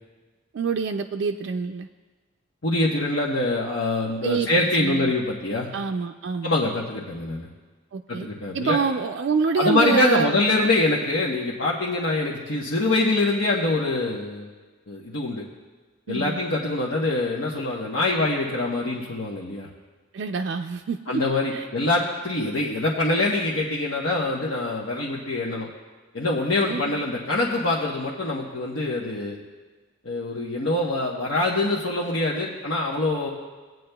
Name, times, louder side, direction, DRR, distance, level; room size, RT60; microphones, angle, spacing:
voice 1, 0.5-1.9 4.2-4.5 4.8-5.1 5.7-6.5 7.9-8.3 8.5-10.4 16.1-16.4 20.1-21.2 21.5-21.6 26.7-27.0, right 5 dB, 70° right, 5 dB, 0.4 m, -26 dB
voice 2, 2.6-5.7 6.4-7.5 8.1-8.8 9.5-14.5 14.9-15.4 16.1-19.7 21.1-25.7 26.1-29.4 30.0-33.3, left 2 dB, 85° left, -5 dB, 1.1 m, -24 dB
18.5 x 9.2 x 2.3 m, 1.4 s
head